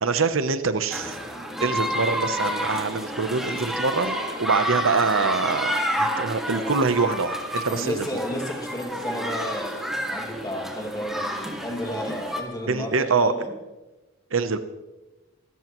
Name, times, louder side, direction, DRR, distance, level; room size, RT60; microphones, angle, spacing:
voice 1, 0.0-1.2 1.6-8.1 12.7-13.3 14.3-14.6, right 4 dB, 70° right, 11 dB, 0.8 m, -24 dB
sound 1, 0.9-12.4, equal, ahead, 2.0 m, -29 dB
voice 2, 7.7-9.8 10.1-13.5, equal, 20° left, 1 dB, 2.3 m, -32 dB
25.5 x 14.0 x 3.1 m, 1.1 s
head